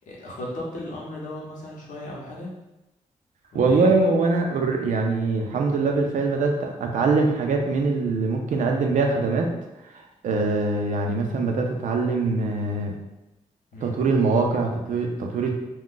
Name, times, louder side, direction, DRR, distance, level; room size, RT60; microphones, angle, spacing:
voice 1, 0.1-2.5 3.5-3.9 10.3-10.5 13.7-13.9, left 1 dB, 90° left, -3 dB, 0.8 m, -36 dB
voice 2, 3.5-9.5 9.9-13.0 13.8-15.5, right 3 dB, 80° right, 2 dB, 0.5 m, -23 dB
2.3 x 2.2 x 3.8 m, 0.95 s
wide cardioid pair, 140°, 13 cm